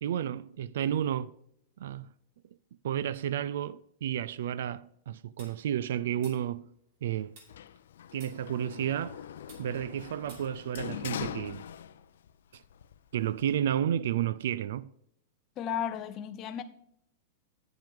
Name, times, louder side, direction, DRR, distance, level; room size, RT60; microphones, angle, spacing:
voice 1, 0.0-1.4 1.8-2.1 2.8-6.7 7.0-7.4 8.1-9.2 9.6-11.6 12.5-12.6 13.1-14.9, right 10 dB, 60° right, 0.3 m, -32 dB
sound 1, 5.4-7.0 7.4-8.9 9.4-11.1, right 2 dB, 40° right, 2.4 m, -56 dB
Sliding door, 7.5-12.3 12.6-13.6, left 10 dB, 75° left, 0.5 m, -42 dB
voice 2, 15.6-16.6, left 9 dB, 20° left, 0.6 m, -34 dB
9.1 x 7.6 x 3.6 m
supercardioid pair, 180°, 0 cm